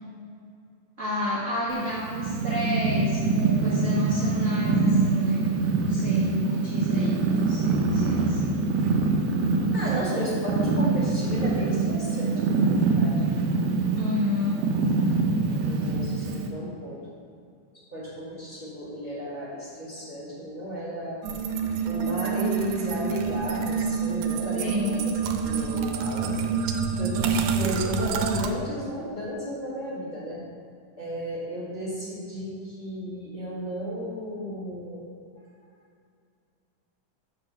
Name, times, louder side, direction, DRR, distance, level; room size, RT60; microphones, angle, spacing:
voice 1, 1.0-5.4 5.8-8.6 13.9-14.6 24.5-24.9, left 1 dB, 40° right, -9 dB, 1.2 m, -30 dB
Purr, 1.7-16.5, right 4 dB, 70° right, 1.8 m, -24 dB
voice 2, 9.7-13.3 15.4-17.0 17.9-21.2 21.8-25.1 25.4-30.4 31.0-35.1, equal, 20° left, -10 dB, 2.1 m, -34 dB
sound 1, 21.2-28.5, right 6 dB, 90° right, 2.1 m, -27 dB
6.9 x 5.5 x 6.4 m, 2.3 s
omnidirectional pair, 3.5 m